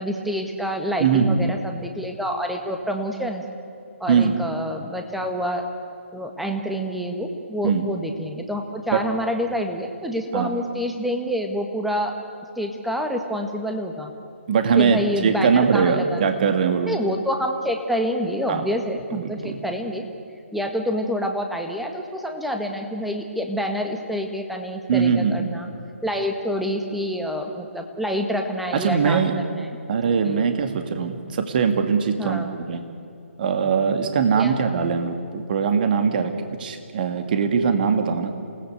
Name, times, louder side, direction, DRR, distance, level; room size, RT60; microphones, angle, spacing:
voice 1, 0.0-3.4 4.0-5.6 6.1-12.1 12.6-14.1 14.8-16.2 16.9-20.0 20.5-25.7 26.0-29.7 30.2-30.5 32.2-32.5 34.4-34.5, equal, ahead, 3 dB, 1.7 m, -27 dB
voice 2, 1.0-1.5 4.1-4.4 7.6-7.8 8.9-9.0 10.3-10.5 14.5-16.9 18.5-18.6 19.1-19.6 24.9-25.5 28.7-29.3 29.9-32.8 33.4-36.3 36.6-38.3, right 6 dB, 40° right, 6 dB, 2.4 m, -21 dB
28.0 x 18.5 x 8.1 m, 2.6 s
figure-of-eight pair, 145°, 7 cm